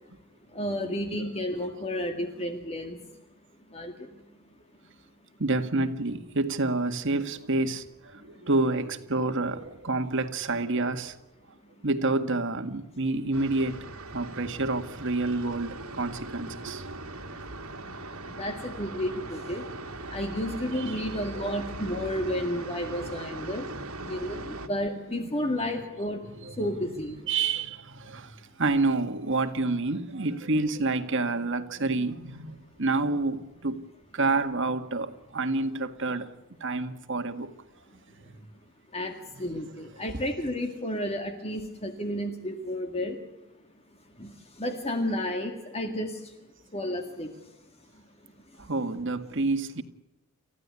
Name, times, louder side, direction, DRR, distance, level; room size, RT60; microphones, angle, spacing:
voice 1, 0.5-3.2 3.7-4.2 8.2-8.5 17.3-17.4 18.2-23.7 24.0-27.3 38.9-43.2 44.1-47.6 47.9-48.0 48.5-48.7, left 1 dB, 30° left, 2.0 m, -32 dB
voice 2, 5.4-11.2 11.8-13.8 14.1-16.8 17.4-17.5 17.8-18.0 20.1-20.2 20.7-21.1 21.3-21.5 24.0-24.2 26.4-26.7 27.3-33.8 34.1-36.3 36.6-37.5 38.2-38.4 40.1-40.2 48.7-49.8, right 3 dB, 60° right, 1.8 m, -28 dB
sound 1, 13.3-24.7, right 2 dB, 75° right, 2.2 m, -40 dB
29.5 x 15.5 x 9.6 m
head